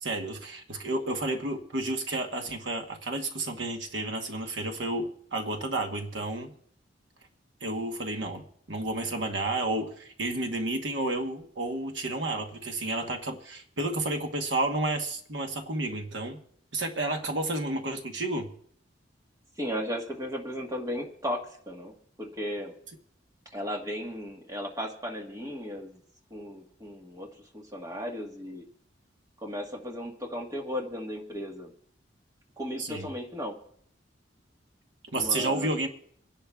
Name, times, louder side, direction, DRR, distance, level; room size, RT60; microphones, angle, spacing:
voice 1, 0.0-6.5 7.6-16.4 16.7-18.5 32.8-33.1 35.1-35.9, right 2 dB, 80° right, 5 dB, 1.1 m, -31 dB
voice 2, 19.6-21.9 22.2-22.7 23.5-26.0 26.3-27.3 27.5-28.6 29.4-31.7 32.6-33.5 35.1-35.7, equal, 20° right, 1 dB, 1.4 m, -35 dB
27.5 x 10.5 x 2.3 m, 0.63 s
head